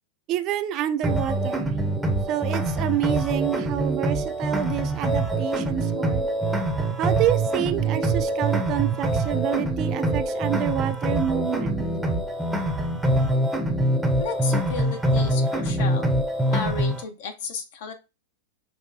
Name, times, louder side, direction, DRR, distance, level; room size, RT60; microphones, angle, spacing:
voice 1, 0.3-1.7 2.3-6.3 7.0-11.8, right 11 dB, 40° right, 0.4 m, -28 dB
sound 1, 1.0-17.0, right 1 dB, 5° right, 0.7 m, -24 dB
voice 2, 14.2-16.1 16.5-17.9, left 5 dB, 60° left, 0.9 m, -33 dB
5.4 x 2.2 x 2.7 m
hypercardioid pair, 115°, 0 cm